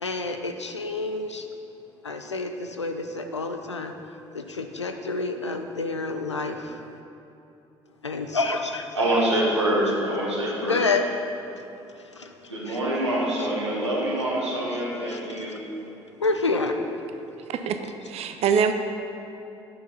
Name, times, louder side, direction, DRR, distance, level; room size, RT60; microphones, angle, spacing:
voice 1, 0.0-1.5 2.0-6.8 8.0-9.0 10.6-12.8 15.1-15.6 16.2-16.8, left 3 dB, 90° left, 5 dB, 0.4 m, -29 dB
voice 2, 8.9-10.8 12.5-15.6, right 1 dB, 85° right, -5 dB, 1.4 m, -25 dB
voice 3, 18.0-18.7, right 7 dB, 45° right, 8 dB, 0.5 m, -23 dB
8.7 x 5.7 x 4.0 m, 2.8 s
figure-of-eight pair, 55°, 14 cm